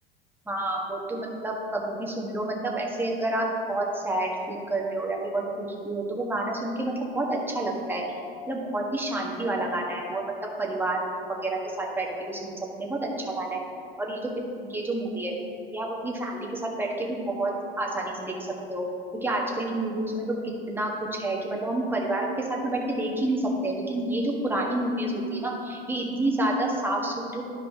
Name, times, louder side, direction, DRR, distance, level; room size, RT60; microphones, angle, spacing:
voice 1, 0.5-8.0 8.5-10.2 10.6-12.5 12.8-13.6 14.0-14.3 14.7-15.3 15.7-17.5 17.8-18.3 18.7-18.9 19.2-20.2 20.7-27.4, right 1 dB, 5° right, -2 dB, 1.4 m, -29 dB
12.0 x 4.8 x 3.5 m, 2.4 s
figure-of-eight pair, 80°, 30 cm